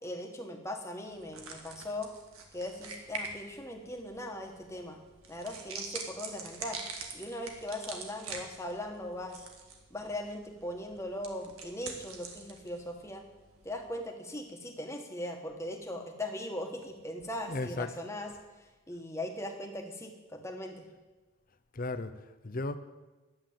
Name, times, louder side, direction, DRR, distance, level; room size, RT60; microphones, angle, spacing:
voice 1, 0.0-2.1 2.5-5.0 5.3-6.8 7.1-9.5 9.9-13.2 13.6-18.3 18.6-20.8, left 1 dB, 15° left, 2 dB, 1.4 m, -39 dB
sound 1, 1.1-13.9, right 4 dB, 85° right, 1.8 m, -45 dB
voice 2, 17.5-17.9 21.7-22.8, left 2 dB, 40° left, 11 dB, 0.7 m, -35 dB
11.0 x 8.7 x 7.6 m, 1.2 s
head